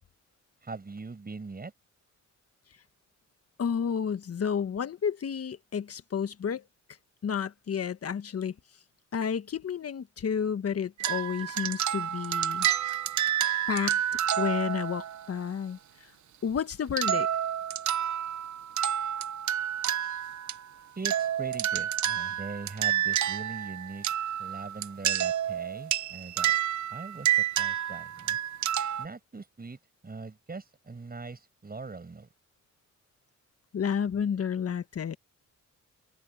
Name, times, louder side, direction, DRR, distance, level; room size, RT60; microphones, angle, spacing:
voice 1, 0.6-1.7 21.0-24.0 24.4-26.5 26.9-27.3 27.6-28.4 29.0-29.8 30.0-32.3, right 4 dB, 30° right, 8.0 m, -41 dB
voice 2, 3.6-6.6 7.2-8.5 9.1-12.7 13.7-14.0 14.4-15.8 16.4-17.3 33.7-35.2, left 7 dB, 50° left, 1.5 m, -31 dB
sound 1, 11.0-15.3 17.0-20.6 21.0-29.1, right 10 dB, 65° right, 1.0 m, -29 dB
open air
cardioid pair, 90°, 31 cm